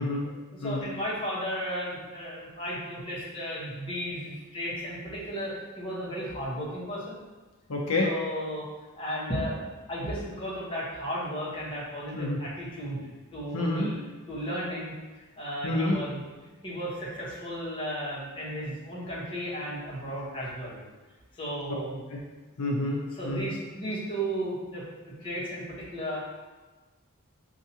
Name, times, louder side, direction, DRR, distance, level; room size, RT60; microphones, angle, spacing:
voice 1, 0.0-0.3 0.6-0.8 7.7-8.1 12.1-12.4 13.5-13.9 15.6-16.0 22.1-22.2 22.6-23.5, left 2 dB, 80° left, -2 dB, 0.6 m, -28 dB
voice 2, 0.5-7.2 8.0-8.6 8.9-9.6 9.9-13.0 13.3-13.9 14.3-14.9 15.4-16.2 16.6-20.8 21.3-22.0 23.1-26.2, equal, 25° left, -7 dB, 1.1 m, -34 dB
5.4 x 2.5 x 2.8 m, 1.3 s
head